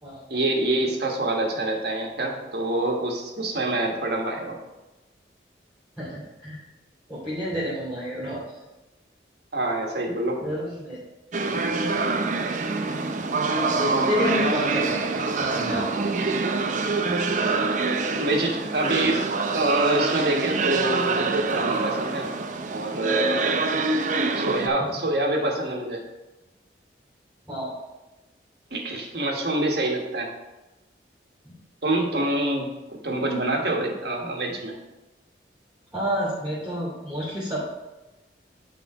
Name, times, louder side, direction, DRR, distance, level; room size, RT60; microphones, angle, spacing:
voice 1, 0.3-4.6 9.5-10.4 18.2-19.2 19.5-22.3 22.7-23.4 24.3-26.0 28.7-30.3 31.8-34.8, right 1 dB, 60° right, 1 dB, 1.4 m, -26 dB
voice 2, 6.0-6.6 7.1-8.4 10.4-11.0 13.5-16.1 27.5-27.8 31.4-31.5 35.9-37.7, equal, 5° right, -10 dB, 2.5 m, -29 dB
sound 1, 11.3-24.7, right 3 dB, 45° right, 0.5 m, -25 dB
9.6 x 3.7 x 4.7 m, 1.0 s
head